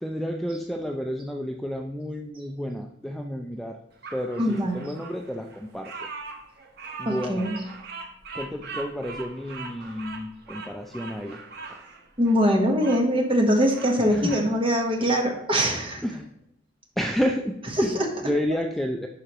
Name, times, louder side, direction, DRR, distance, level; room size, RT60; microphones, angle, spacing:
voice 1, 0.0-3.8 4.1-5.9 7.0-7.5 8.3-11.4 14.1-14.5 15.0-15.1 16.0-16.3 17.0-17.9 18.2-19.1, equal, ahead, 3 dB, 0.3 m, -30 dB
Bird vocalization bird call bird song, 4.0-13.0 13.5-14.5, right 4 dB, 50° right, 0.9 m, -41 dB
voice 2, 4.4-4.8 7.1-7.6 12.2-16.0 17.8-18.1, equal, 25° right, 2 dB, 1.1 m, -22 dB
11.0 x 4.8 x 3.0 m, 0.83 s
head